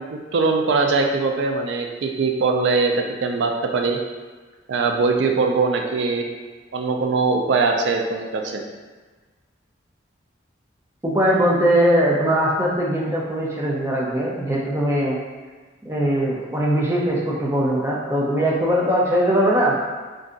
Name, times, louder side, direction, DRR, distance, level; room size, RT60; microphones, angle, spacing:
voice 1, 0.0-4.0 4.7-6.3 6.7-8.6, right 4 dB, 75° right, 3 dB, 0.4 m, -21 dB
voice 2, 11.0-15.2 15.8-19.8, equal, 15° right, -4 dB, 0.4 m, -20 dB
2.5 x 2.3 x 3.7 m, 1.4 s
head